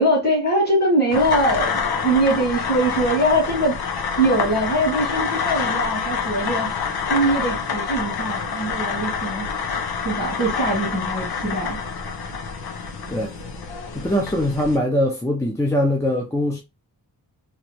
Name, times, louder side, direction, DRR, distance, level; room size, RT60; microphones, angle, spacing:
voice 1, 0.0-3.8 4.2-6.7 7.1-9.5 10.0-11.8, right 1 dB, 25° left, 1.7 m, -22 dB
sound 1, 1.1-14.8, left 6 dB, 80° left, 0.8 m, -27 dB
voice 2, 13.9-16.6, left 1 dB, 10° left, 0.5 m, -22 dB
3.2 x 2.5 x 2.9 m
wide cardioid pair, 140°, 38 cm